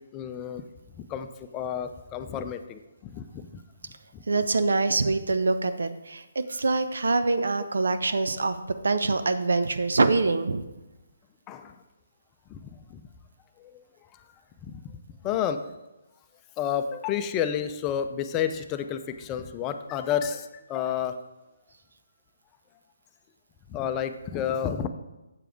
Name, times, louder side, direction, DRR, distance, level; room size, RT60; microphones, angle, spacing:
voice 1, 0.1-0.7 1.0-3.6 4.1-4.2 11.5-11.8 12.5-13.0 13.6-13.8 14.1-14.2 14.6-15.0 15.2-15.6 16.6-21.2 23.7-24.9, left 9 dB, 20° left, 8 dB, 0.6 m, -31 dB
voice 2, 4.3-8.6 8.8-10.6, right 3 dB, 70° right, 10 dB, 0.7 m, -24 dB
8.0 x 6.9 x 4.6 m, 1.0 s
figure-of-eight pair, 145°, 0 cm